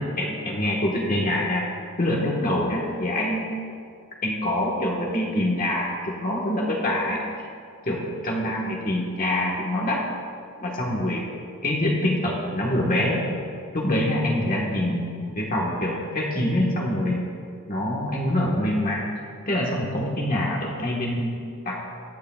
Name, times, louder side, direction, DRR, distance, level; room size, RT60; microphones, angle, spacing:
voice 1, 0.0-1.6 2.0-3.5 4.2-7.2 7.9-10.1 10.6-11.3 11.6-13.2 13.7-17.2 17.7-19.0 19.5-21.3 21.6-21.8, left 1 dB, 40° left, -3 dB, 1.4 m, -25 dB
21.5 x 8.5 x 2.4 m, 2.3 s
head